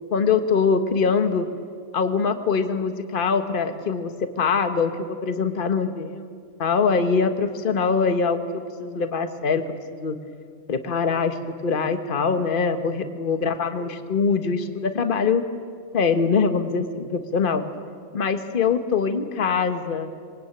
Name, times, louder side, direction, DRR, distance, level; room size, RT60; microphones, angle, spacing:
voice 1, 0.1-1.5 1.9-6.3 6.6-9.6 9.9-10.2 10.7-11.4 11.6-15.4 15.9-17.6 18.1-20.1, left 5 dB, 35° left, 8 dB, 1.4 m, -23 dB
26.0 x 22.0 x 8.9 m, 2.2 s
omnidirectional pair, 1.6 m